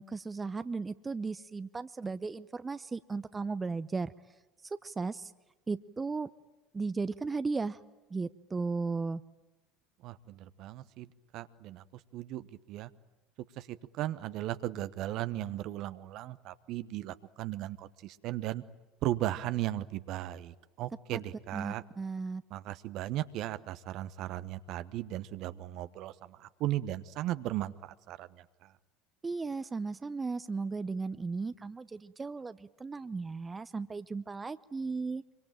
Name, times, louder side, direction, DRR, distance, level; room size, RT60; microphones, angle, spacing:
voice 1, 0.0-4.1 4.7-5.3 5.7-6.3 6.7-7.8 8.1-9.2 21.1-21.2 21.5-22.4 29.2-35.2, right 4 dB, 20° right, 14 dB, 0.8 m, -36 dB
voice 2, 10.0-11.8 12.1-12.9 13.6-18.6 19.0-21.8 22.5-28.4, right 14 dB, 55° right, 13 dB, 1.1 m, -36 dB
25.5 x 24.5 x 9.0 m, 1.2 s
hypercardioid pair, 70°, 0 cm